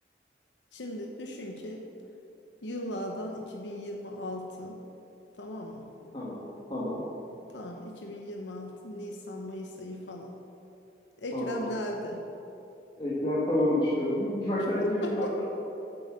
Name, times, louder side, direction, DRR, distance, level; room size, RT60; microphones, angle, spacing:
voice 1, 0.7-1.9 2.6-4.8 5.4-5.9 7.5-10.4 11.2-12.2 15.0-15.4, left 1 dB, 85° left, 2 dB, 0.9 m, -37 dB
voice 2, 6.7-7.1 11.3-11.6 13.0-15.4, left 1 dB, 30° left, -9 dB, 1.7 m, -28 dB
7.9 x 7.9 x 7.3 m, 2.8 s
head